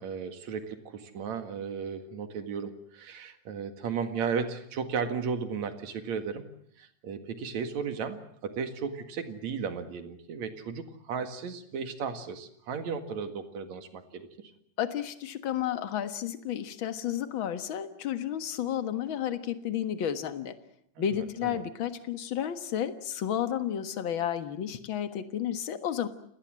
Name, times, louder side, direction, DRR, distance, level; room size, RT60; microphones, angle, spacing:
voice 1, 0.0-6.5 6.8-14.5 21.0-21.6, right 6 dB, 65° right, 8 dB, 3.1 m, -35 dB
voice 2, 14.8-20.5 21.0-26.1, left 10 dB, 50° left, 10 dB, 1.9 m, -32 dB
29.0 x 19.0 x 7.6 m, 0.68 s
omnidirectional pair, 3.4 m